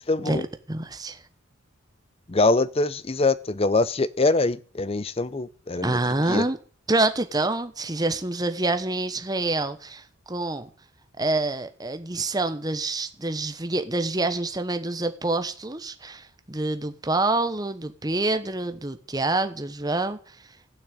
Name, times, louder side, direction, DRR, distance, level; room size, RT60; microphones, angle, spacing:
voice 1, 0.1-0.4 2.3-6.0 6.3-6.4, left 3 dB, 30° left, 0.6 m, -23 dB
voice 2, 0.7-1.2 5.8-6.6 6.9-10.7 11.2-20.2, right 2 dB, 20° right, 1.1 m, -27 dB
16.0 x 6.5 x 8.1 m
head